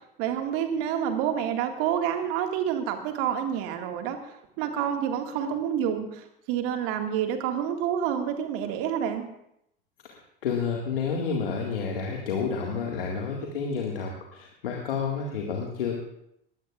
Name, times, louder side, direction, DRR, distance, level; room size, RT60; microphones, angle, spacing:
voice 1, 0.2-4.2 4.6-9.2, right 9 dB, 50° right, 5 dB, 2.0 m, -28 dB
voice 2, 10.0-16.0, left 5 dB, 70° left, 0 dB, 2.0 m, -30 dB
21.0 x 16.5 x 2.5 m, 0.76 s
figure-of-eight pair, 75°, 29 cm